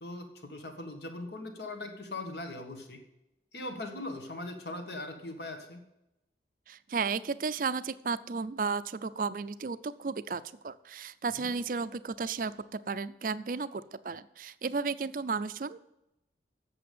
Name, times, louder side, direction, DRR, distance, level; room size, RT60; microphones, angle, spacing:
voice 1, 0.0-3.0 3.5-5.8 11.4-11.5, left 2 dB, 65° left, 5 dB, 1.7 m, -40 dB
voice 2, 6.7-15.8, right 4 dB, 50° right, 15 dB, 0.4 m, -34 dB
8.5 x 7.0 x 8.4 m, 0.89 s
head